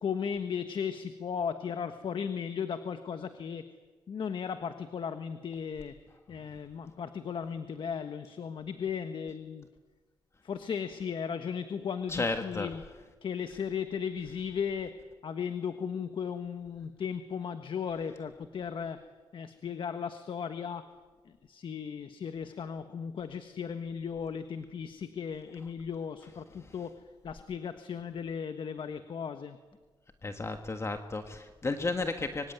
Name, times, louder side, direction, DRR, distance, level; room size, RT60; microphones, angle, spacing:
voice 1, 0.0-3.6 4.1-6.0 6.3-9.7 10.4-12.8 13.2-19.0 19.3-20.8 21.2-29.6, left 7 dB, 65° left, 9 dB, 1.4 m, -36 dB
voice 2, 12.1-12.7 26.6-26.7 30.2-32.5, left 3 dB, 30° left, 6 dB, 1.7 m, -33 dB
25.5 x 24.0 x 9.4 m, 1.4 s
cardioid pair, 110°, 9 cm